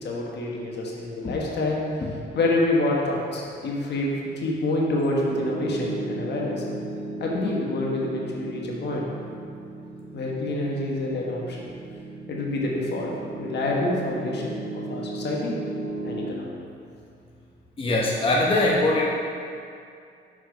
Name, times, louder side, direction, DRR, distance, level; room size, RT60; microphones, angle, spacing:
voice 1, 0.0-1.8 2.3-6.6 7.2-9.1 10.1-11.6 12.3-15.5 16.0-16.4, left 2 dB, 60° left, -2 dB, 1.3 m, -27 dB
Piano, 5.3-16.3, right 2 dB, 80° right, 1.0 m, -35 dB
voice 2, 17.8-19.1, left 2 dB, 25° left, -3 dB, 0.8 m, -21 dB
6.1 x 4.6 x 4.8 m, 2.5 s
cardioid pair, 90°, 20 cm